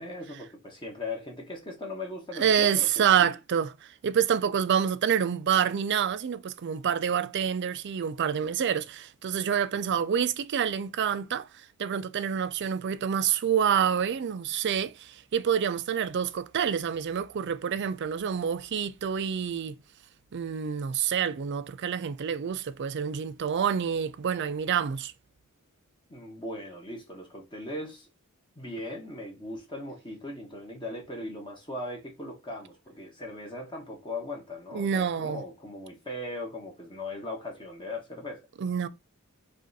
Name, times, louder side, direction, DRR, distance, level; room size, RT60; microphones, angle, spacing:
voice 1, 0.0-2.9 3.2-3.3 26.1-28.1 28.6-38.4, left 1 dB, 20° left, 1.2 m, -39 dB
voice 2, 2.3-3.7 4.0-11.5 11.8-19.7 20.3-25.1 34.7-35.4 38.6-38.9, right 8 dB, 55° right, 0.4 m, -27 dB
5.0 x 2.5 x 4.0 m
head